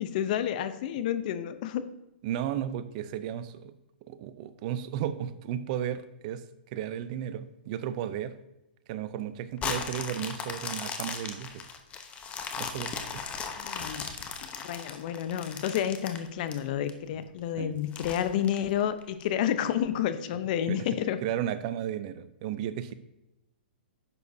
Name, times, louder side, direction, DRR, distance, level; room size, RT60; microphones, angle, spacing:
voice 1, 0.0-1.8 13.6-14.1 14.6-21.2, left 10 dB, 50° left, 11 dB, 0.7 m, -30 dB
voice 2, 2.2-3.7 4.1-6.4 6.7-8.3 8.9-11.6 12.6-13.0 17.6-17.8 20.7-20.8 21.2-22.9, right 10 dB, 45° right, 13 dB, 0.6 m, -34 dB
sound 1, 9.6-16.9 17.4-17.5 17.9-19.2 19.8-19.9, left 6 dB, 20° left, 0.9 m, -37 dB
10.5 x 7.1 x 2.7 m, 0.92 s
hypercardioid pair, 130°, 6 cm